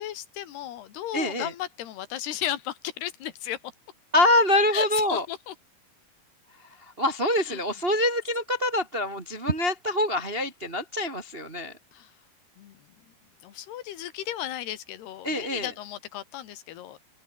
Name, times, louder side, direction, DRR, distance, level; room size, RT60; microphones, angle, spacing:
voice 1, 0.0-3.6 4.7-5.6 7.3-7.6 11.9-12.1 12.6-12.8 13.4-17.0, left 12 dB, 85° left, 3.7 m, -35 dB
voice 2, 1.1-1.5 4.1-5.2 7.0-11.7 15.2-15.7, left 1 dB, 30° right, 1.0 m, -25 dB
open air
omnidirectional pair, 4.5 m